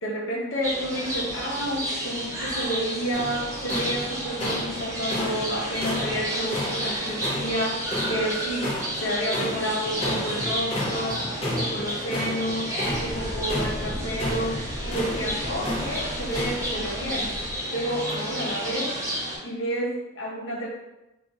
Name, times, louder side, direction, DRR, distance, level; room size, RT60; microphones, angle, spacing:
voice 1, 0.0-12.7 13.0-17.3 17.7-18.9 19.4-20.7, equal, 90° left, -2 dB, 0.8 m, -30 dB
sound 1, 0.6-19.4, equal, 15° right, 0.7 m, -31 dB
sound 2, 3.1-16.6, left 1 dB, 30° left, 0.6 m, -33 dB
sound 3, 12.8-17.6, equal, 55° right, 0.6 m, -37 dB
2.4 x 2.4 x 4.0 m, 0.98 s
head